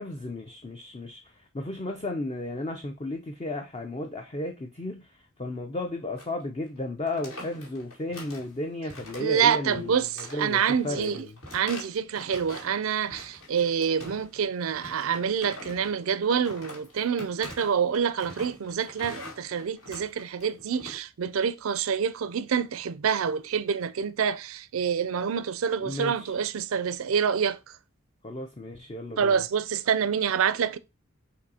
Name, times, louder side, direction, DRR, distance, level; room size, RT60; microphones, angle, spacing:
voice 1, 0.0-11.4 25.8-26.4 28.2-29.4, left 2 dB, 25° left, 0.5 m, -34 dB
sound 1, 6.1-6.4 6.7-6.8 7.1-8.5 8.9-9.5 9.7-12.7 13.1-14.4 14.7-21.0, left 1 dB, 75° left, 2.1 m, -44 dB
voice 2, 9.2-11.2 11.5-27.6 29.2-30.8, right 7 dB, 75° right, 0.4 m, -27 dB
6.4 x 2.7 x 2.7 m
head